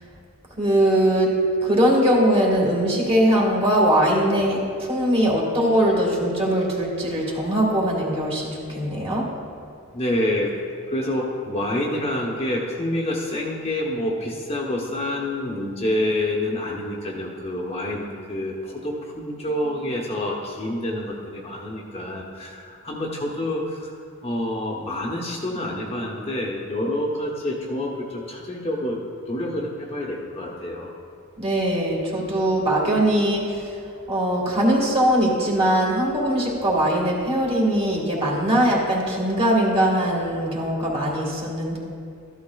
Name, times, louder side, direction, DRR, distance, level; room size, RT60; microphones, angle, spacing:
voice 1, 0.6-1.3 1.6-9.3 31.4-33.8 34.1-41.8, right 1 dB, 25° right, -3 dB, 1.8 m, -21 dB
voice 2, 9.9-10.5 10.9-23.9 24.2-29.0 29.3-30.9, left 1 dB, 25° left, -2 dB, 0.9 m, -27 dB
14.0 x 12.0 x 2.3 m, 2.4 s
head